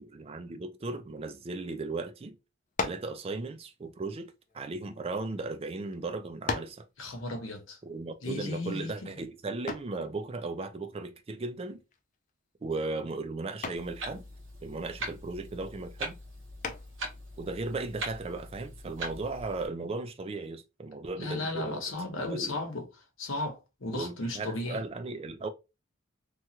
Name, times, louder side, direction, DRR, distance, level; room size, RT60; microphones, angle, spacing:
voice 1, 0.0-2.4 2.8-6.8 7.8-11.8 12.6-14.2 14.6-16.2 17.4-22.6 23.9-25.5, right 3 dB, 30° right, 0.4 m, -36 dB
sound 1, 2.7-3.2 4.1-5.3 5.9-6.0 6.5-6.9 9.7-10.0 11.9-12.3 12.7-13.0 13.6-14.0 16.6-17.1, left 4 dB, 40° left, 0.4 m, -35 dB
voice 2, 7.0-7.8 8.2-9.1 21.2-22.8 23.2-24.8, left 2 dB, 80° left, 1.0 m, -35 dB
Clock, 13.7-19.7, right 1 dB, 65° right, 0.9 m, -41 dB
3.0 x 2.3 x 2.8 m
head